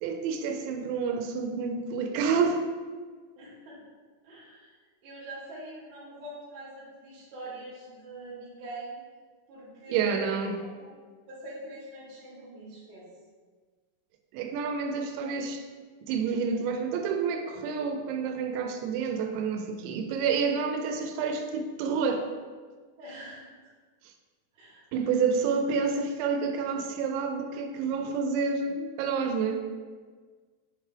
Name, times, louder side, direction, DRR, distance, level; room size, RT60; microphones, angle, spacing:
voice 1, 0.0-2.7 9.9-10.6 14.3-15.6 16.1-22.3 24.9-29.6, right 5 dB, 90° right, 5 dB, 2.9 m, -29 dB
voice 2, 3.4-3.8 4.2-4.7 5.0-9.0 9.5-10.4 10.7-11.0 11.3-13.1 23.0-23.5 24.5-24.8, right 1 dB, 60° right, -6 dB, 2.1 m, -43 dB
6.4 x 3.3 x 4.5 m, 1.5 s
omnidirectional pair, 5.2 m